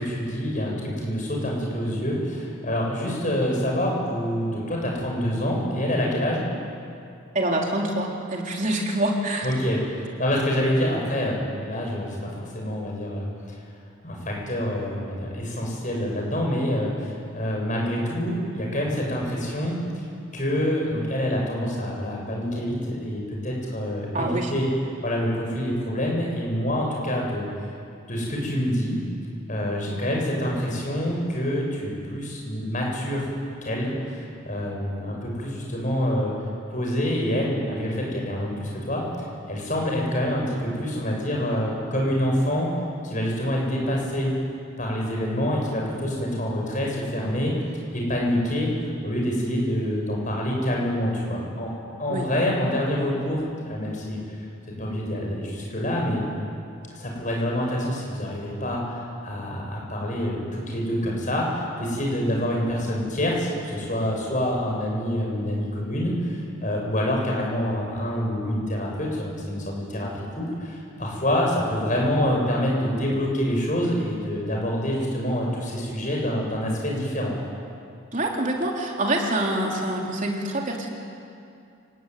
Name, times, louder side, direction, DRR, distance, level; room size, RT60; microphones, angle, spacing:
voice 1, 0.0-6.4 9.4-13.3 14.0-20.0 20.3-24.7 25.0-27.5 28.1-29.0 29.5-33.3 33.6-36.3 36.7-42.7 43.0-44.4 44.8-47.5 47.9-48.7 49.0-51.7 52.0-54.2 54.8-56.3 57.0-77.4, equal, 35° left, -1 dB, 7.5 m, -26 dB
voice 2, 7.3-9.5 24.1-24.5 52.1-52.3 78.1-80.9, right 1 dB, 35° right, 0 dB, 3.8 m, -26 dB
29.5 x 19.5 x 9.4 m, 2.5 s
head